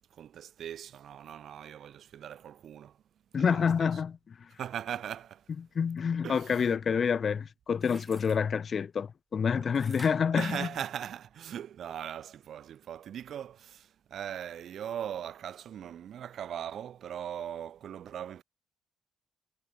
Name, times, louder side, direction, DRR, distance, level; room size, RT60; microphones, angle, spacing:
voice 1, 0.0-3.0 3.3-4.0 4.5-5.5 6.2-6.8 10.3-18.4, right 9 dB, 65° right, 4.3 m, -40 dB
voice 2, 3.3-4.3 5.7-10.7, left 6 dB, 45° left, 0.5 m, -28 dB
sound 1, 7.7-8.4 9.7-11.3 11.8-11.9, right 3 dB, 20° right, 4.4 m, -52 dB
cardioid pair, 90°, 0 cm